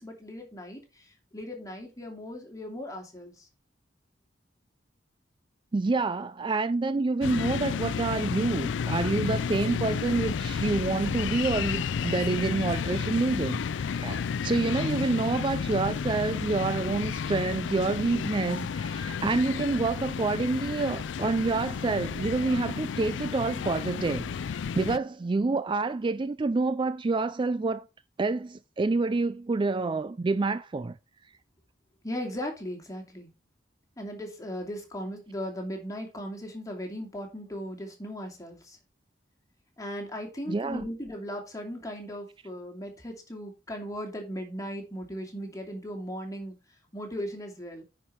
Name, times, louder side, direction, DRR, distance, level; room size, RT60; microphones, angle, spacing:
voice 1, 0.0-3.5 32.0-33.3 34.0-38.8 39.8-46.6 46.9-47.8, equal, 20° left, 2.5 m, -37 dB
voice 2, 5.7-27.8 28.2-31.0 40.5-40.9, right 3 dB, 25° right, 0.4 m, -28 dB
sound 1, 7.2-25.0, left 6 dB, 75° left, 0.4 m, -32 dB
9.8 x 5.1 x 4.6 m
head